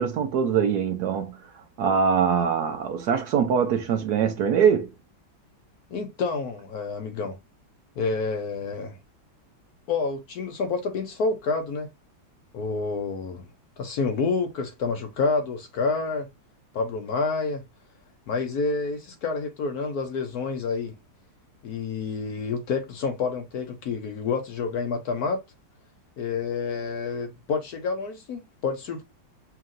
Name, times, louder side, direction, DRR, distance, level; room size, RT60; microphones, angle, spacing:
voice 1, 0.0-4.9, right 7 dB, 65° right, 1.0 m, -23 dB
voice 2, 5.9-7.4 8.0-9.0 9.9-11.9 12.5-13.4 13.8-16.3 16.7-17.6 18.3-20.9 21.6-25.4 26.2-29.0, left 4 dB, 65° left, 1.0 m, -28 dB
5.6 x 2.8 x 2.5 m
omnidirectional pair, 2.1 m